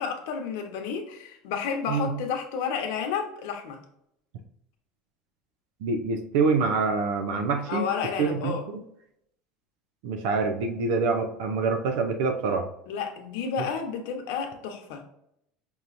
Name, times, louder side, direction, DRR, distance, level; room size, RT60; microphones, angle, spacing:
voice 1, 0.0-3.8 7.7-8.6 12.9-15.0, left 6 dB, 80° left, 3 dB, 0.9 m, -31 dB
voice 2, 5.8-7.8 8.2-8.6 10.0-12.7 13.6-13.7, right 4 dB, 75° right, 5 dB, 0.6 m, -26 dB
5.4 x 3.0 x 2.5 m, 0.75 s
cardioid pair, 155°, 0 cm